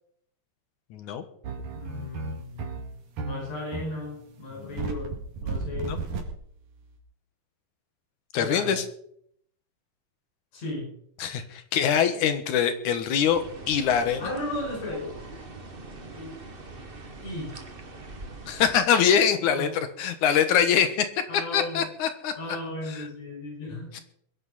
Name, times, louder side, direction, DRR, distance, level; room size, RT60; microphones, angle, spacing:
voice 1, 0.9-1.2 4.6-4.7 5.8-6.0 8.3-8.8 11.2-14.2 18.5-19.7 20.0-21.1 21.5-22.3 22.9-23.0 23.9-24.0, left 8 dB, 70° left, 9 dB, 2.7 m, -24 dB
sound 1, 1.4-7.0, right 4 dB, 70° right, 3.6 m, -34 dB
voice 2, 1.7-2.7 3.2-6.0 8.4-8.8 10.5-10.9 14.2-15.2 16.1-16.4 17.2-17.6 19.4-19.7 21.3-21.9 22.4-24.0, left 2 dB, 55° left, -1 dB, 6.9 m, -35 dB
sound 2, 13.3-18.8, right 2 dB, 35° right, 0.8 m, -43 dB
22.0 x 11.0 x 4.2 m, 0.67 s
omnidirectional pair, 3.8 m